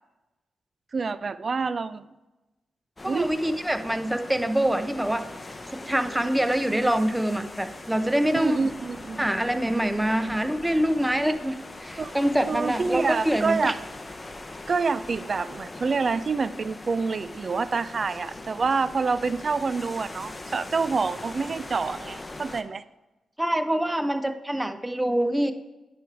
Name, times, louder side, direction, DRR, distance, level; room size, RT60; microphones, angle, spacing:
voice 1, 0.9-2.0 3.1-3.4 8.3-9.3 12.0-12.2 12.5-13.8 14.7-22.8, right 4 dB, 50° right, 16 dB, 0.3 m, -27 dB
sound 1, 3.0-22.6, left 2 dB, 25° left, 0.7 m, -41 dB
voice 2, 3.0-5.2 5.9-8.6 9.2-11.6 11.8-13.7 23.4-25.5, right 1 dB, 10° right, 9 dB, 0.7 m, -25 dB
10.0 x 3.4 x 4.6 m, 1.1 s
hypercardioid pair, 40°, 0 cm